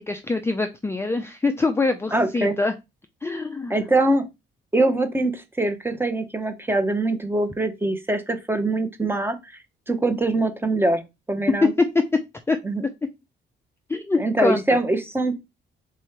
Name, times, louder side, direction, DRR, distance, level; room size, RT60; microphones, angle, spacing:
voice 1, 0.0-2.7 3.2-3.7 12.5-12.6 13.9-14.8, left 3 dB, 10° left, 6 dB, 0.4 m, -25 dB
voice 2, 2.1-2.6 3.7-4.2 4.7-9.4 9.9-11.7 12.6-12.8 14.2-15.4, right 2 dB, 10° right, 7 dB, 0.9 m, -23 dB
3.7 x 2.9 x 4.5 m, 0.24 s
cardioid pair, 90°, 20 cm